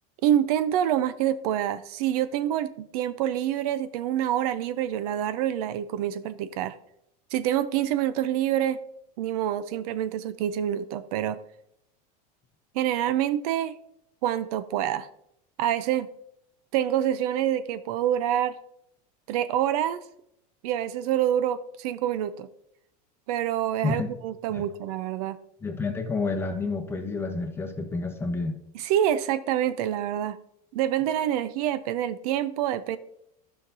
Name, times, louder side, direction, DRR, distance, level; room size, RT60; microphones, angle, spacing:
voice 1, 0.2-6.8 7.3-8.8 9.2-11.4 12.7-13.7 14.2-15.1 15.6-16.1 16.7-18.6 19.3-20.0 20.6-22.5 23.3-25.4 28.7-30.4 30.7-33.0, right 11 dB, 70° right, 14 dB, 0.5 m, -26 dB
voice 2, 25.6-28.5, left 3 dB, 10° left, 3 dB, 0.9 m, -29 dB
12.5 x 5.7 x 2.7 m, 0.77 s
supercardioid pair, 140°, 20 cm